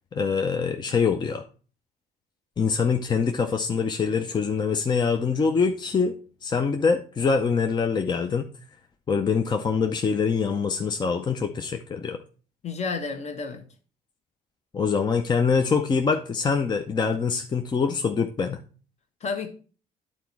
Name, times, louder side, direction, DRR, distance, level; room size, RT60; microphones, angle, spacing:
voice 1, 0.1-1.4 2.6-6.1 6.4-8.5 9.1-12.2 14.7-18.6, left 5 dB, 25° left, 0.6 m, -24 dB
voice 2, 12.6-13.7 19.2-19.5, left 4 dB, 40° left, 1.2 m, -30 dB
9.2 x 4.2 x 4.5 m
cardioid pair, 110°, 17 cm